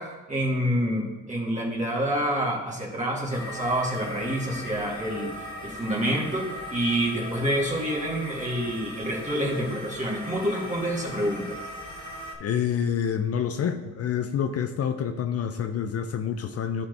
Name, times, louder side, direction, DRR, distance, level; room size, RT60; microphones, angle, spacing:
voice 1, 0.0-5.3 5.6-11.6, equal, 25° right, -2 dB, 2.0 m, -27 dB
sound 1, 3.3-12.3, left 1 dB, 15° left, 1.7 m, -39 dB
voice 2, 12.4-16.9, left 8 dB, 55° left, 7 dB, 0.6 m, -27 dB
11.0 x 4.4 x 3.4 m, 1.2 s
cardioid pair, 90°, 30 cm